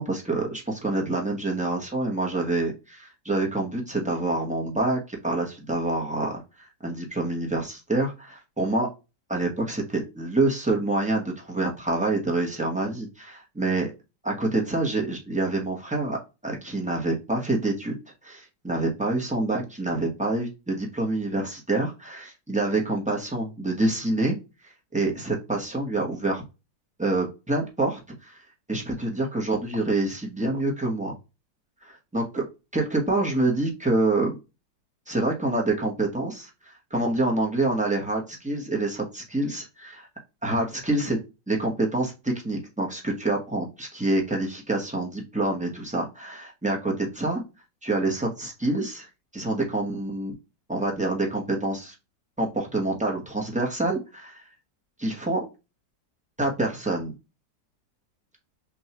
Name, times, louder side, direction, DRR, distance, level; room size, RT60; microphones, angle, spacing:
voice 1, 0.0-6.4 6.8-8.9 9.3-13.9 14.2-16.2 16.4-17.9 18.2-24.4 24.9-26.4 27.0-28.4 28.7-31.2 31.9-32.4 32.7-34.3 35.1-40.1 40.4-41.2 41.5-47.4 47.8-50.4 50.7-51.9 52.4-54.4 55.0-55.5 56.4-57.1, right 2 dB, 10° right, -1 dB, 0.5 m, -27 dB
6.1 x 2.3 x 2.9 m, 0.27 s
omnidirectional pair, 1.9 m